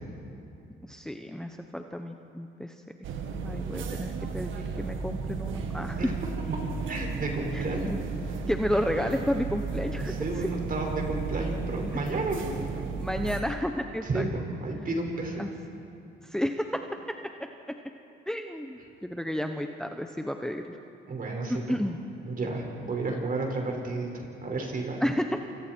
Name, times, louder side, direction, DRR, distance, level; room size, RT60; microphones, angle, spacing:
voice 1, 0.8-2.8 3.4-6.1 7.5-8.0 8.5-10.5 13.0-14.3 15.4-15.5 16.2-16.8 18.3-20.7 21.5-22.0 25.0-25.4, equal, 5° left, 5 dB, 1.1 m, -31 dB
sound 1, 3.0-13.4, right 5 dB, 80° right, 1.9 m, -34 dB
voice 2, 6.9-7.9 9.9-12.5 14.1-15.4 21.1-21.6 22.3-24.1 24.4-25.0, right 2 dB, 45° right, 1 dB, 5.7 m, -31 dB
28.5 x 26.5 x 4.7 m, 2.7 s
cardioid pair, 90°, 20 cm